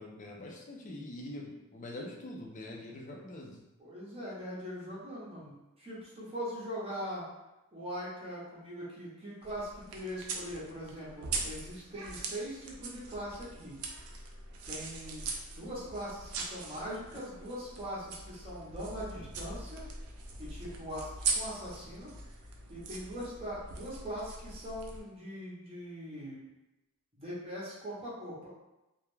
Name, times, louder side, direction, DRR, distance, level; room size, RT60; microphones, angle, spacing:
voice 1, 0.0-3.6, left 1 dB, 35° left, 0 dB, 0.4 m, -44 dB
voice 2, 3.8-7.3 7.7-13.8 14.7-15.3 15.6-19.8 20.4-21.1 21.3-22.1 22.7-26.4 27.2-28.5, equal, 25° right, -7 dB, 0.7 m, -41 dB
sound 1, 9.4-25.0, right 4 dB, 85° right, 0.4 m, -41 dB
2.3 x 2.1 x 3.1 m, 0.97 s
head